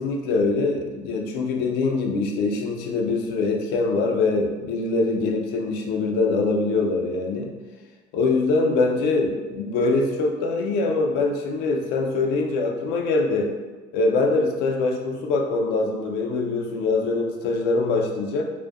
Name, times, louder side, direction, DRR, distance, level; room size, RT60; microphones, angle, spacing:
voice 1, 0.0-7.5 8.1-13.5 13.9-18.5, left 3 dB, 90° left, 2 dB, 0.4 m, -23 dB
2.5 x 2.1 x 2.3 m, 1.2 s
cardioid pair, 180°, 17 cm